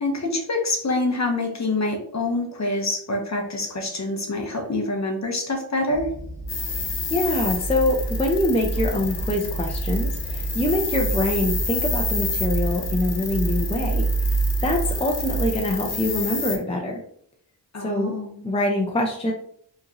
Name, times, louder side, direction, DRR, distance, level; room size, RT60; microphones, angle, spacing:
voice 1, 0.0-6.1 17.7-18.4, left 2 dB, 40° left, 2 dB, 0.9 m, -26 dB
sound 1, 5.9-15.5, right 3 dB, 20° right, 1.1 m, -28 dB
sound 2, 6.5-16.6, left 4 dB, 65° left, 1.0 m, -30 dB
voice 2, 6.6-14.0 14.3-17.0 17.8-18.1 18.4-19.3, left 1 dB, 15° left, 1 dB, 0.4 m, -24 dB
4.7 x 3.1 x 2.8 m, 0.63 s
wide cardioid pair, 150°, 43 cm